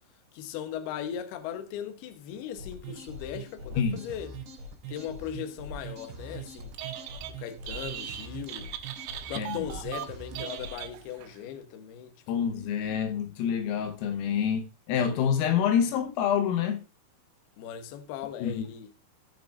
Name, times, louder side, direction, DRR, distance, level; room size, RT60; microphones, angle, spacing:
voice 1, 0.3-4.3 4.9-6.7 7.4-8.7 9.3-12.5 17.6-18.9, left 9 dB, 70° left, 2.6 m, -38 dB
sound 1, 2.6-10.7, right 3 dB, 60° right, 4.2 m, -42 dB
Telephone, 6.6-7.3 7.6-11.3, right 11 dB, 85° right, 3.5 m, -39 dB
voice 2, 12.3-16.8 18.4-18.6, left 8 dB, 90° left, 3.9 m, -27 dB
17.0 x 6.4 x 2.5 m
omnidirectional pair, 5.8 m